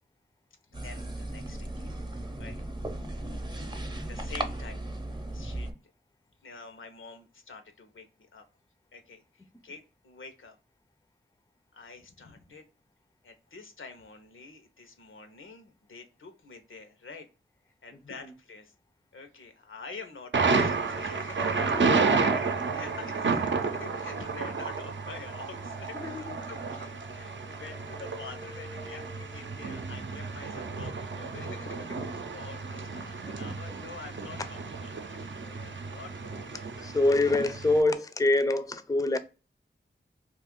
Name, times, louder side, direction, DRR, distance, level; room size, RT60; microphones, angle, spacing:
voice 1, 0.7-2.0 2.4-2.7 4.0-4.9 5.3-5.7 6.4-8.4 8.9-10.6 11.7-12.7 13.2-17.3 17.6-18.7 19.1-37.4, left 4 dB, 90° left, 0.7 m, -47 dB
sound 1, 0.7-5.7, right 1 dB, 20° right, 0.6 m, -36 dB
Thunder, 20.3-37.8, right 4 dB, 70° right, 0.6 m, -31 dB
voice 2, 21.6-22.2 25.9-26.4 28.7-29.2 33.5-33.6 36.8-39.2, left 2 dB, 15° left, 0.4 m, -26 dB
2.5 x 2.4 x 3.6 m
wide cardioid pair, 50°, 20 cm